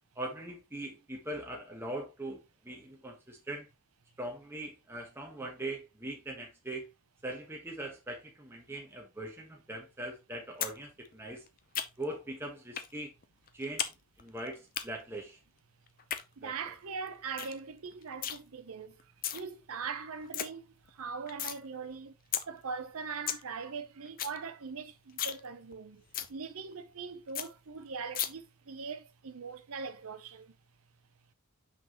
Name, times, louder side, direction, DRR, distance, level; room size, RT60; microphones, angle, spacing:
voice 1, 0.2-3.7 4.2-6.9 7.2-11.4 12.0-13.1 13.5-13.9 14.2-15.4 16.4-16.5, right 1 dB, 10° right, 1.2 m, -41 dB
sound 1, 10.6-10.8 11.1-12.2 12.8-12.9 13.2-13.9 14.2-14.8 15.9-16.2 16.7-16.8 17.1-17.2 17.4-17.6 17.9-18.4 19.0-19.4 19.8-19.9 20.1-20.5 20.8-21.6 21.9-22.0 22.3-22.4 22.8-22.9 23.1-23.4 23.8-23.9 24.1-24.4 24.7-24.8 25.1-25.4 25.7-25.8 26.1-26.3 26.7-26.8 27.0-27.1 27.3-27.5 28.1-28.3, left 10 dB, 40° left, 0.6 m, -34 dB
voice 2, 16.4-19.1 19.3-22.1 22.5-26.0 26.3-30.6, right 5 dB, 70° right, 0.7 m, -41 dB
5.8 x 5.8 x 3.0 m
head